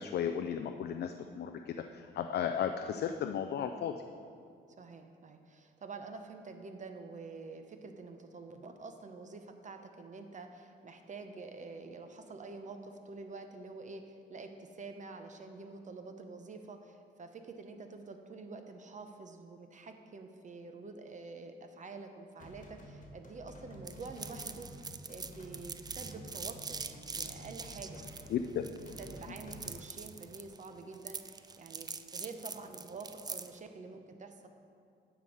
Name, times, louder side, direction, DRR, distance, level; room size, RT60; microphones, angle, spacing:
voice 1, 0.0-4.0 28.3-28.7, left 8 dB, 55° left, 6 dB, 0.4 m, -35 dB
voice 2, 4.8-28.5 29.0-34.5, right 3 dB, 40° right, 6 dB, 0.8 m, -47 dB
sound 1, 22.4-29.8, equal, 40° left, 1.4 m, -50 dB
sound 2, 23.9-33.6, right 5 dB, 20° right, 0.3 m, -44 dB
9.2 x 6.1 x 4.9 m, 2.4 s
cardioid pair, 90°, 20 cm